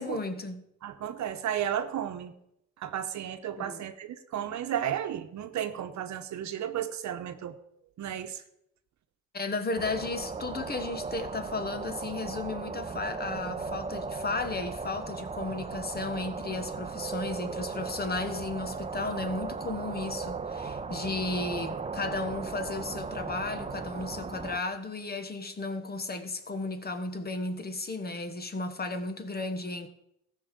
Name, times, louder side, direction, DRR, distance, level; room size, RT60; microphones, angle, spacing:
voice 1, 0.0-0.6 3.6-3.8 9.3-29.9, left 3 dB, 30° left, 1.4 m, -34 dB
voice 2, 0.8-2.3 2.8-7.6 8.0-8.4, right 10 dB, 70° right, 1.0 m, -33 dB
sound 1, 9.8-24.6, right 4 dB, 20° right, 0.7 m, -37 dB
14.0 x 5.6 x 6.8 m
cardioid pair, 90°, 30 cm